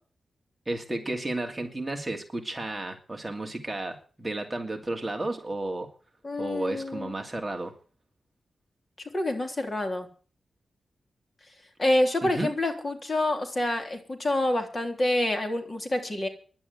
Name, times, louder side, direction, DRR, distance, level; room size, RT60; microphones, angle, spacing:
voice 1, 0.7-5.9 6.4-7.7 12.2-12.5, right 2 dB, 15° right, 3 dB, 2.5 m, -32 dB
voice 2, 6.2-7.1 9.1-10.1 11.8-16.3, left 1 dB, 30° left, 5 dB, 3.4 m, -27 dB
11.5 x 9.4 x 9.4 m, 0.40 s
wide cardioid pair, 140°, 0 cm